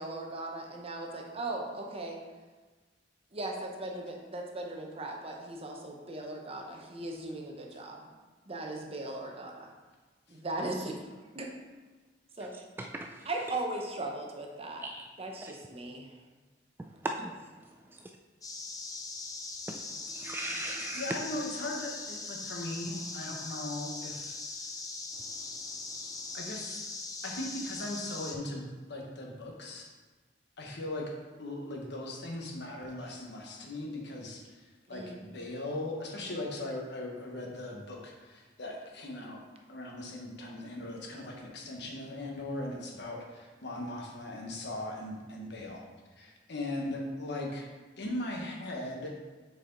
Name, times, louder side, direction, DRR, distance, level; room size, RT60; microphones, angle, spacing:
voice 1, 0.0-2.2 3.3-8.1 8.5-9.7 10.3-11.5 12.4-12.6 13.2-14.8 15.2-16.1 34.9-35.2, right 2 dB, 35° right, 1 dB, 0.9 m, -38 dB
voice 2, 12.8-13.3 14.8-15.1 15.4-15.5 17.0-17.3 19.7-21.1 22.9-23.1, right 2 dB, 10° right, 2 dB, 0.3 m, -38 dB
sound 1, 18.4-28.3, left 3 dB, 20° left, 0.7 m, -40 dB
voice 3, 20.9-24.3 26.3-26.8 27.2-29.9 30.6-31.0 31.4-34.6 34.9-39.4 39.7-45.8 46.2-47.7 48.0-49.1, left 1 dB, 65° left, 0 dB, 1.2 m, -39 dB
6.8 x 4.7 x 3.9 m, 1.3 s
head